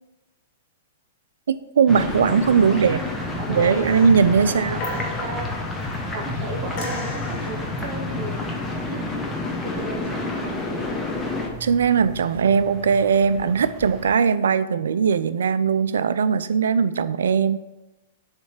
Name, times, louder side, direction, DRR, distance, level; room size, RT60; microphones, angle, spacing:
voice 1, 1.5-3.0 3.5-4.8 11.6-17.6, right 6 dB, 70° right, 14 dB, 0.3 m, -19 dB
sound 1, 1.9-11.5, left 3 dB, 10° left, 1.0 m, -29 dB
sound 2, 1.9-14.2, right 6 dB, 30° right, 0.7 m, -41 dB
sound 3, 2.3-2.6 2.9-3.4 3.8-6.3 6.8-7.9 10.9-11.1, left 1 dB, 45° left, 1.2 m, -36 dB
voice 2, 2.6-3.0 3.3-4.1 4.4-5.5 6.1-9.1 9.6-11.0, right 2 dB, 55° right, 3 dB, 1.2 m, -35 dB
7.0 x 3.2 x 5.9 m, 1.0 s
figure-of-eight pair, 105°, 0 cm